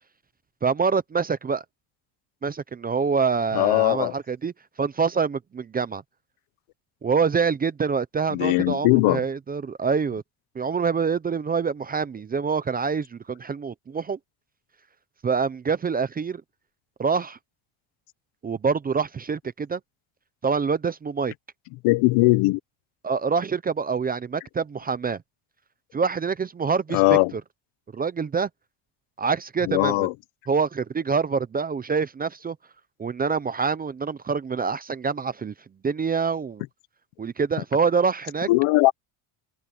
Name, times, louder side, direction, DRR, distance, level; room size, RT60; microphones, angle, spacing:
voice 1, 0.6-1.6 2.4-4.5 4.8-6.0 7.0-10.2 10.6-14.2 15.2-16.4 17.0-17.4 18.4-19.8 20.4-21.3 23.0-25.2 25.9-27.4 27.9-28.5 29.2-30.1 30.5-32.6 33.0-35.5 35.8-36.6 37.2-38.5, right 5 dB, 20° right, 0.4 m, -25 dB
voice 2, 3.5-4.1 8.3-9.2 21.8-22.6 26.9-27.3 29.6-30.1 38.5-38.9, left 21 dB, 90° left, 1.0 m, -19 dB
cardioid pair, 150°, 50 cm